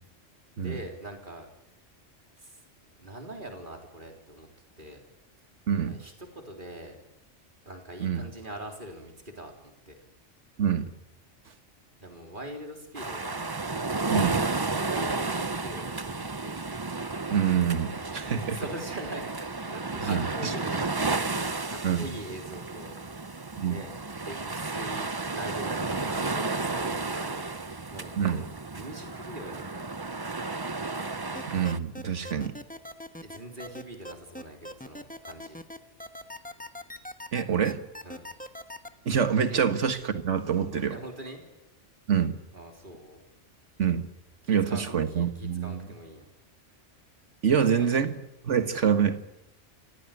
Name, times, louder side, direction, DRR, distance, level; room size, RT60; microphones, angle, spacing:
voice 1, 0.6-1.5 2.4-2.6 3.0-4.5 4.8-5.0 5.9-7.0 7.7-10.0 12.0-13.5 14.6-16.6 18.2-19.3 19.7-23.0 23.7-23.9 24.2-28.4 28.7-30.0 33.2-35.6 38.0-38.3 39.5-39.6 40.9-41.4 42.5-43.2 44.4-46.3 47.5-48.0, right 1 dB, 45° right, 3 dB, 4.1 m, -42 dB
sound 1, 12.9-31.8, right 3 dB, 20° right, 0.7 m, -32 dB
voice 2, 14.1-14.4 17.3-18.6 20.0-20.5 21.8-22.1 23.6-23.8 28.2-28.4 31.5-32.6 37.3-37.8 39.1-41.0 42.1-42.4 43.8-44.1 44.5-45.8 47.4-48.1 48.4-49.2, right 7 dB, 75° right, 10 dB, 1.8 m, -26 dB
sound 2, 31.3-38.9, left 1 dB, 5° left, 1.2 m, -40 dB
29.0 x 15.5 x 9.2 m, 0.91 s
omnidirectional pair, 1.2 m